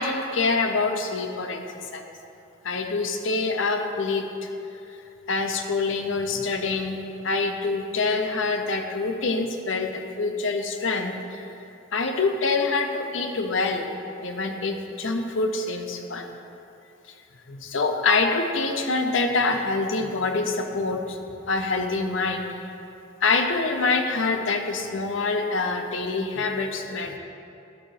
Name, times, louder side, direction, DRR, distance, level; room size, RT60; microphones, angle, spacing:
voice 1, 0.0-2.0 2.6-4.5 5.3-7.0 7.2-11.4 11.9-13.9 14.2-16.3 17.5-21.2 21.5-22.5 23.2-27.2, left 3 dB, 80° left, 5 dB, 0.8 m, -25 dB
11.5 x 4.0 x 6.4 m, 2.7 s
head